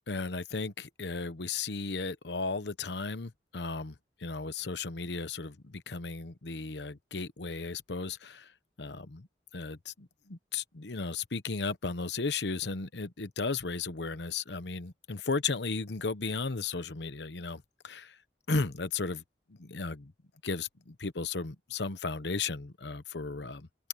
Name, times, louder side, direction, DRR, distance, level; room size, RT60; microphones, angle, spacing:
voice 1, 0.1-8.5 8.8-9.3 9.5-18.2 18.5-19.2 19.6-20.1 20.4-23.7, left 4 dB, 75° left, 1.0 m, -35 dB
open air
head